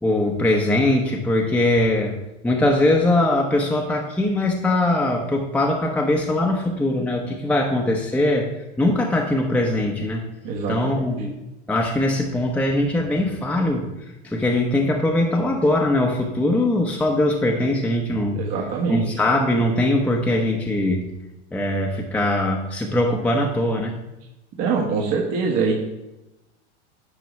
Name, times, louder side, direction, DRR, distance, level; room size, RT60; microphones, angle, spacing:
voice 1, 0.0-2.1 2.4-8.5 8.8-10.2 10.7-11.3 11.7-13.9 14.2-18.4 18.9-21.1 21.5-24.0, left 1 dB, 5° left, 0 dB, 0.9 m, -21 dB
voice 2, 10.4-11.1 18.3-19.2 24.6-25.7, right 5 dB, 45° right, -1 dB, 1.5 m, -24 dB
10.5 x 4.9 x 3.2 m, 0.96 s
hypercardioid pair, 105°, 35 cm